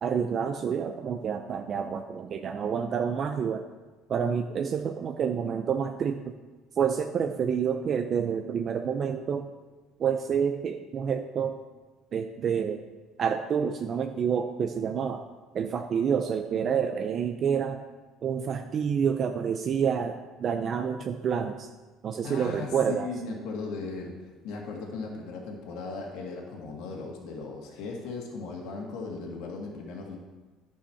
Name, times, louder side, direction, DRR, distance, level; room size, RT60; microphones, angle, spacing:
voice 1, 0.0-3.6 4.1-6.3 6.8-9.4 10.0-11.6 12.1-12.8 13.2-15.3 15.5-17.8 18.2-21.7 22.0-23.1, right 7 dB, 45° right, 6 dB, 0.6 m, -28 dB
voice 2, 22.2-24.1 24.4-30.2, left 3 dB, 75° left, -1 dB, 1.8 m, -37 dB
10.0 x 5.6 x 5.7 m, 1.3 s
supercardioid pair, 105°, 0 cm